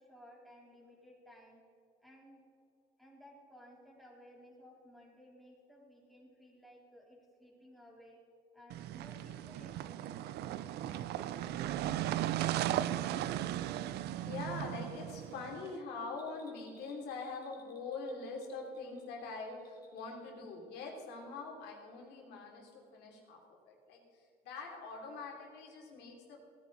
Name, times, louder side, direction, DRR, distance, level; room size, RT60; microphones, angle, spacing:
voice 1, 0.0-1.6 2.0-2.4 3.0-8.2 8.5-10.2 10.7-11.0, equal, ahead, -4 dB, 3.8 m, -58 dB
sound 1, 8.7-15.7, right 12 dB, 75° right, 0.5 m, -36 dB
voice 2, 14.2-23.4 23.6-24.0 24.4-26.4, left 3 dB, 85° left, 0 dB, 3.5 m, -44 dB
Bell, 16.1-20.2 20.5-20.6, left 3 dB, 20° left, 2.6 m, -66 dB
18.0 x 9.9 x 4.2 m, 2.5 s
cardioid pair, 110°, 17 cm